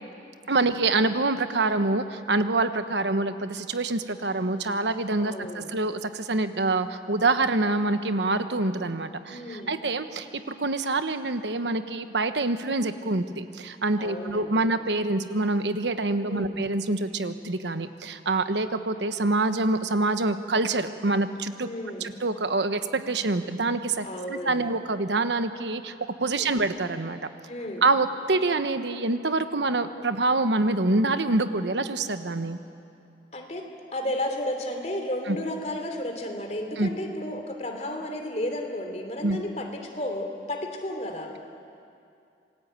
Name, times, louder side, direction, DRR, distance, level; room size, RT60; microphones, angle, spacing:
voice 1, 0.5-21.7 22.0-25.9 26.2-27.2 27.8-32.6 35.3-35.4 36.8-36.9 39.2-39.4, right 2 dB, 90° right, 10 dB, 1.2 m, -26 dB
voice 2, 5.2-5.7 9.3-9.8 14.0-14.6 16.2-16.6 21.6-22.1 24.0-24.6 26.4-26.6 27.5-27.8 33.3-33.6 33.9-41.3, left 1 dB, 40° left, 3 dB, 3.0 m, -33 dB
27.0 x 20.0 x 9.0 m, 2.5 s
head